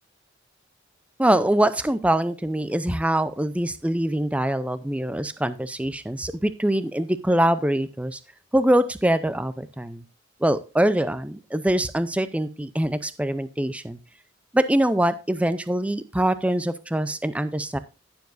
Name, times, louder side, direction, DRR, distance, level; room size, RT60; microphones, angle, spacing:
voice 1, 1.2-8.2 8.5-10.0 10.4-14.0 14.5-17.8, right 1 dB, 5° right, 13 dB, 0.5 m, -23 dB
15.5 x 7.1 x 2.5 m, 0.30 s
head